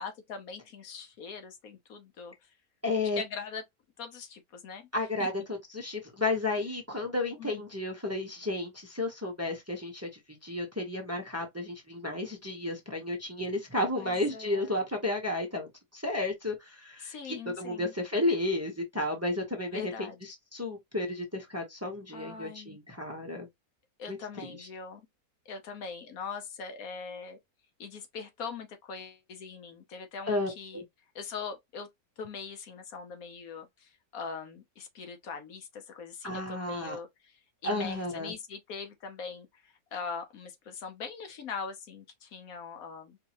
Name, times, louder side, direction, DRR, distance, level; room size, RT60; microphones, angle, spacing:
voice 1, 0.0-2.5 3.1-3.6 4.0-4.9 5.2-5.3 6.6-6.7 7.4-7.7 14.0-14.8 17.0-17.9 19.7-20.2 22.1-22.8 24.0-25.1 25.5-27.4 27.8-30.8 31.1-31.9 32.2-43.2, left 5 dB, 70° left, 1.2 m, -42 dB
voice 2, 2.8-3.2 4.9-23.5 24.1-24.2 24.6-24.7 30.3-30.8 36.2-37.0 37.6-38.3, left 2 dB, 10° right, 0.9 m, -32 dB
4.6 x 2.8 x 2.9 m
omnidirectional pair, 1.7 m